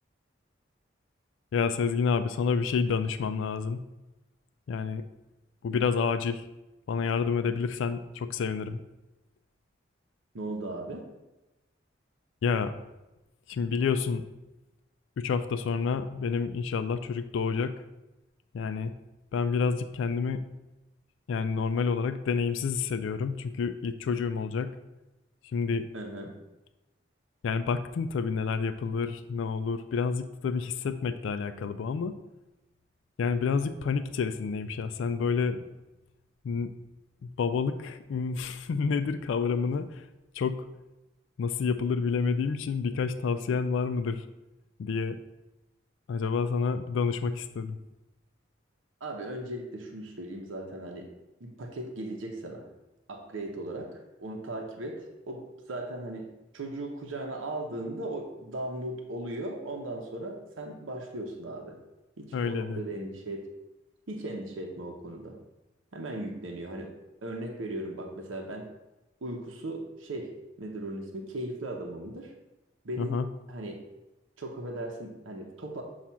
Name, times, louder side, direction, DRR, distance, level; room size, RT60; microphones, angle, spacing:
voice 1, 1.5-3.8 4.7-5.0 5.6-6.5 6.9-8.8 12.4-12.7 13.5-14.2 15.2-17.8 18.5-18.9 19.3-20.4 21.3-24.8 25.4-25.9 27.4-32.2 33.2-35.6 36.4-36.7 37.2-40.1 40.3-40.6 41.4-44.3 44.8-45.2 46.1-47.8 62.3-62.8 73.0-73.3, left 5 dB, 75° left, 10 dB, 0.3 m, -29 dB
voice 2, 10.3-11.0 25.9-26.3 49.0-51.1 51.4-52.7 53.1-61.8 62.2-63.5 64.1-65.4 65.9-66.9 67.2-68.7 69.2-72.3 72.8-73.2 73.5-73.8 74.4-75.8, right 1 dB, 80° right, 1 dB, 0.8 m, -37 dB
7.2 x 2.4 x 5.5 m, 1.0 s
head